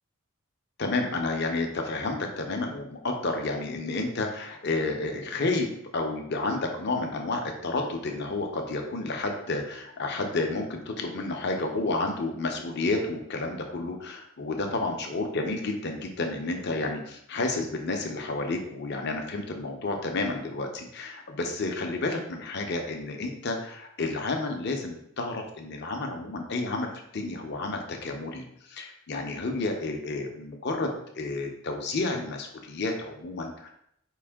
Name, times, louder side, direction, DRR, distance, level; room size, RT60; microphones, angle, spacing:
voice 1, 0.8-30.9 31.2-33.7, left 2 dB, 50° left, 2 dB, 0.7 m, -31 dB
4.7 x 2.6 x 3.5 m, 0.72 s
head